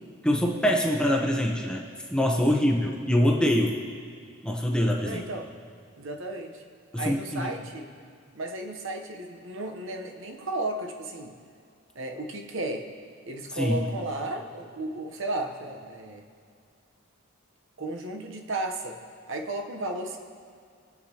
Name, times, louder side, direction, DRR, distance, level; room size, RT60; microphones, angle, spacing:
voice 1, 0.2-1.8 2.1-3.8 4.4-5.2 6.9-7.5 13.6-13.8, equal, 5° left, 0 dB, 0.9 m, -24 dB
voice 2, 5.0-5.5 6.0-6.6 7.0-7.9 8.3-11.4 11.9-12.9 13.3-16.2 17.8-19.0 19.3-20.2, right 2 dB, 60° right, 3 dB, 1.0 m, -34 dB
24.0 x 8.1 x 2.9 m, 2.3 s
head